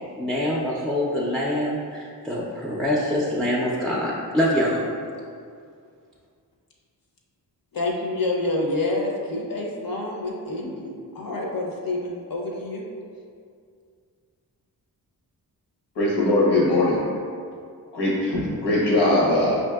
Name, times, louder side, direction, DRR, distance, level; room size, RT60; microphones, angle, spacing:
voice 1, 0.2-4.8, equal, ahead, -5 dB, 0.4 m, -25 dB
voice 2, 7.7-12.8, left 2 dB, 60° left, -2 dB, 0.7 m, -28 dB
voice 3, 15.9-17.0 17.9-19.6, left 1 dB, 90° left, -6 dB, 1.1 m, -20 dB
5.3 x 2.7 x 2.3 m, 2.3 s
wide cardioid pair, 80°, 40 cm